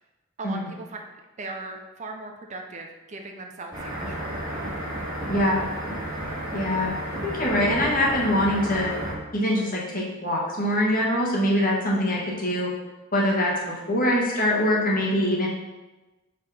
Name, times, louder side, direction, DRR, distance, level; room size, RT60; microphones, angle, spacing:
voice 1, 0.4-1.0 1.4-4.5 11.6-11.7, right 2 dB, 35° right, 3 dB, 0.6 m, -38 dB
sound 1, 3.7-9.1, right 1 dB, 20° right, 2.1 m, -32 dB
voice 2, 6.5-6.9 7.2-8.9 9.3-12.7 13.1-15.5, left 1 dB, 45° left, -3 dB, 1.7 m, -23 dB
5.2 x 3.9 x 5.7 m, 1.1 s
head